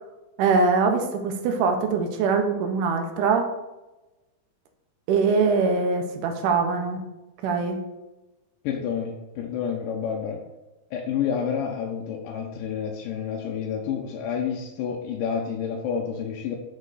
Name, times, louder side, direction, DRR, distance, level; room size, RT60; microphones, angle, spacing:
voice 1, 0.4-3.5 5.1-7.0 7.4-7.8, right 4 dB, 80° right, 5 dB, 2.2 m, -23 dB
voice 2, 8.6-10.4 10.9-16.6, left 7 dB, 85° left, 0 dB, 2.3 m, -29 dB
6.1 x 4.5 x 4.8 m, 1.0 s
omnidirectional pair, 3.9 m